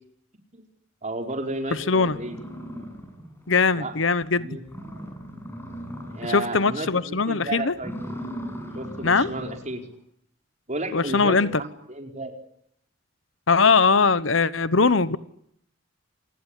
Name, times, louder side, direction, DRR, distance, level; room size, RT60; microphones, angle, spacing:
voice 1, 1.0-2.4 3.8-3.9 4.4-4.6 6.1-7.9 8.7-9.8 10.7-12.4 15.1-15.2, right 2 dB, 35° right, 4.9 m, -32 dB
sound 1, 1.6-1.7 2.1-3.5 3.9-4.0 4.3-4.4 4.6-6.6 6.9-7.2 7.7-9.7, equal, 10° left, 7.0 m, -38 dB
voice 2, 1.9-2.2 3.5-4.6 6.3-7.7 9.0-9.3 10.9-11.6 13.5-15.2, left 4 dB, 70° left, 1.1 m, -21 dB
28.0 x 19.5 x 10.0 m
head